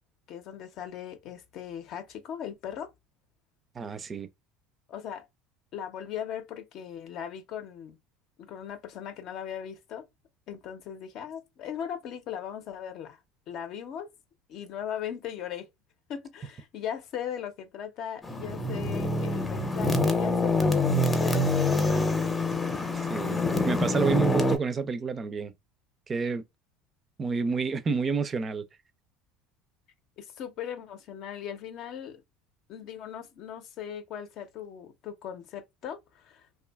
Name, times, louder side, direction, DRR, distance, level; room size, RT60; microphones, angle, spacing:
voice 1, 0.3-2.9 4.9-5.2 5.7-8.0 8.4-10.0 10.5-13.2 13.5-14.1 14.5-15.7 16.1-22.3 30.2-32.2 32.7-36.5, left 9 dB, 55° left, 0.6 m, -38 dB
voice 2, 3.8-4.3 22.9-25.5 26.1-26.4 27.2-28.6, right 5 dB, 30° right, 0.4 m, -29 dB
sound 1, 18.2-24.6, left 2 dB, 15° left, 0.6 m, -26 dB
2.6 x 2.3 x 2.2 m
hypercardioid pair, 85°, 0 cm